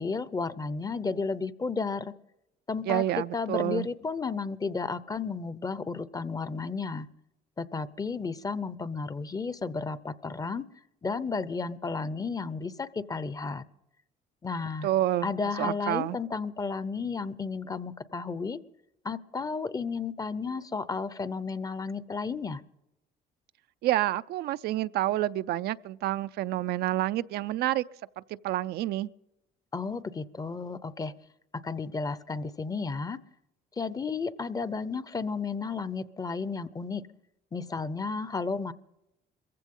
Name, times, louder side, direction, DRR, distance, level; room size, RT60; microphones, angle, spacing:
voice 1, 0.0-2.2 2.7-3.0 3.3-7.1 7.6-10.7 11.0-13.6 14.4-14.9 15.2-18.6 19.0-22.6 29.7-31.1 31.5-33.2 33.8-37.1 37.5-38.7, left 4 dB, 20° left, 0.7 m, -33 dB
voice 2, 2.9-3.9 14.8-15.3 15.6-16.2 23.8-27.8 28.2-29.1, right 14 dB, 70° right, 0.5 m, -28 dB
22.0 x 15.5 x 3.7 m
cardioid pair, 110°, 17 cm